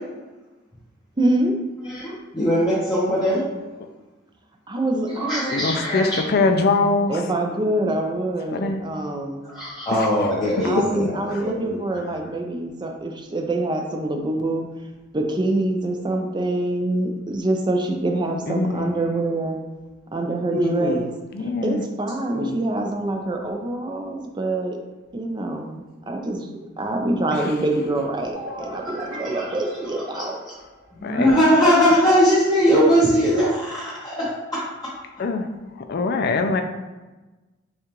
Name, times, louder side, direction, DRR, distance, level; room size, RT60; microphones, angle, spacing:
voice 1, 1.2-1.6 4.7-5.4 7.1-9.5 10.6-14.6 15.1-19.6 20.1-21.1 21.4-24.8 25.1-30.4, right 2 dB, 25° right, 3 dB, 0.4 m, -25 dB
voice 2, 1.9-3.5 5.1-6.2 9.4-11.8 20.5-21.0 22.3-22.6 29.3-29.4 29.9-30.2 30.9-34.6, equal, 20° left, -11 dB, 0.9 m, -20 dB
voice 3, 5.5-7.3 8.5-8.8 9.9-10.3 10.8-11.4 12.0-12.1 18.5-19.2 21.3-21.9 27.3-27.5 29.1-29.2 31.0-31.4 35.2-35.5 35.9-36.6, left 3 dB, 50° left, 6 dB, 0.4 m, -23 dB
sound 1, 28.3-31.1, equal, 85° right, 1.0 m, -39 dB
6.4 x 2.4 x 3.0 m, 1.2 s
head